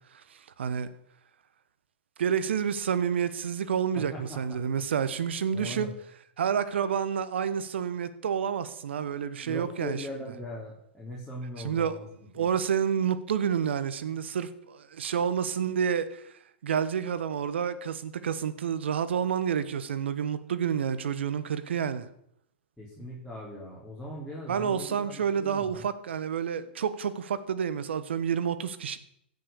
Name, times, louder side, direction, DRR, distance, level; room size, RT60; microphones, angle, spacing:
voice 1, 0.3-0.9 2.2-5.9 6.4-10.1 11.6-11.9 12.3-16.3 16.6-22.1 24.5-29.0, right 7 dB, 75° right, 1.2 m, -29 dB
voice 2, 4.0-4.6 5.5-5.9 9.4-12.0 12.4-12.5 22.8-25.9, equal, ahead, 3.7 m, -40 dB
16.0 x 6.6 x 6.9 m
hypercardioid pair, 115°, 6 cm